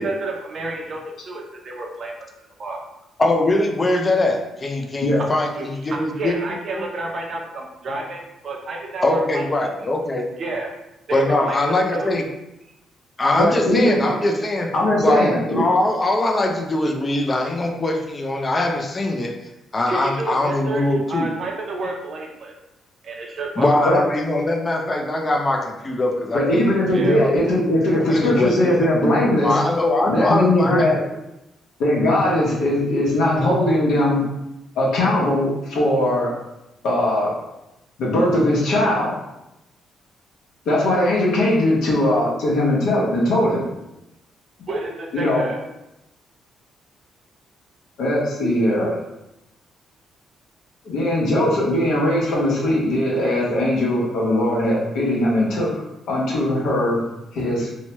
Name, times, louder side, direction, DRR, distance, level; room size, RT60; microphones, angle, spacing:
voice 1, 0.0-2.1 2.6-2.8 5.5-9.4 10.4-10.7 11.1-12.2 19.9-22.5 23.0-23.9 26.9-27.2 44.7-45.6, right 2 dB, 55° right, 0 dB, 0.6 m, -30 dB
voice 2, 3.2-6.4 6.7-6.8 9.0-10.3 11.1-12.2 13.2-14.7 15.0-19.4 19.7-21.3 23.6-26.7 26.9-27.4 28.1-28.9 29.4-30.9, left 2 dB, 30° left, 3 dB, 0.4 m, -22 dB
voice 3, 13.4-14.0 14.7-15.7 23.8-24.0 26.3-29.6 30.1-31.0 31.8-34.2 34.7-36.3 36.8-37.3 38.0-39.1 40.6-43.6 45.1-45.5 48.0-48.9 50.8-55.8 56.1-57.0 57.3-57.7, left 1 dB, 80° left, -5 dB, 0.9 m, -19 dB
2.9 x 2.1 x 2.9 m, 0.92 s
cardioid pair, 90°, 0 cm